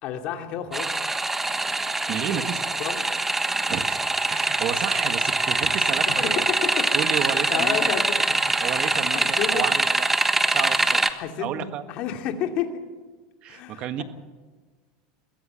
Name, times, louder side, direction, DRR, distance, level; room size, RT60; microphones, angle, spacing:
voice 1, 0.0-1.0 2.8-3.0 6.1-6.9 7.2-9.7 11.1-12.7 13.5-14.0, left 9 dB, 50° left, 5 dB, 2.6 m, -31 dB
sound 1, 0.7-11.1, right 2 dB, 10° right, 1.3 m, -24 dB
voice 2, 2.1-2.7 3.6-6.5 6.9-7.9 8.6-10.1 10.5-11.0 11.4-11.8 13.4-14.0, right 10 dB, 45° right, 10 dB, 1.6 m, -31 dB
22.5 x 16.0 x 7.7 m, 1.4 s
supercardioid pair, 120°, 2 cm